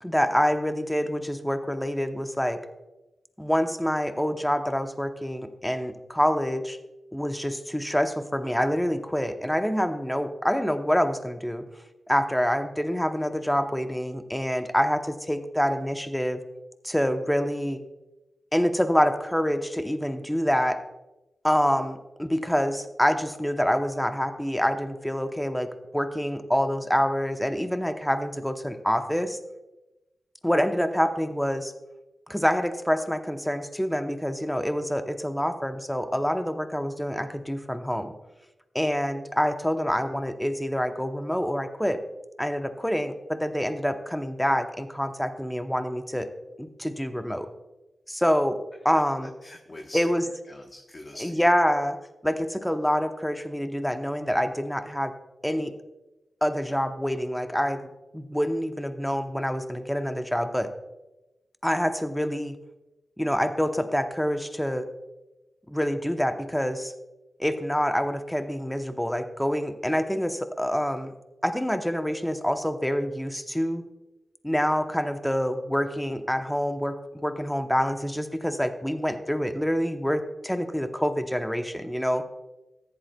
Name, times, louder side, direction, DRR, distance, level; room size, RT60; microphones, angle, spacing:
voice 1, 0.0-2.6 3.4-6.8 7.1-11.6 12.1-16.4 16.8-17.8 18.5-20.8 21.4-25.7 25.9-29.4 30.4-31.7 32.3-38.1 38.7-42.0 42.4-46.3 46.6-47.5 48.1-48.6 48.8-49.3 49.9-50.2 51.2-52.0 52.2-55.1 55.4-55.7 56.4-60.7 61.6-62.6 63.2-64.9 65.7-66.9 67.4-71.1 71.4-73.8 74.4-82.2, equal, 5° left, 7 dB, 0.8 m, -26 dB
voice 2, 49.4-50.1 50.5-51.5, left 1 dB, 40° left, 1 dB, 1.1 m, -43 dB
14.0 x 10.5 x 2.3 m, 1.0 s
cardioid pair, 65°, 0 cm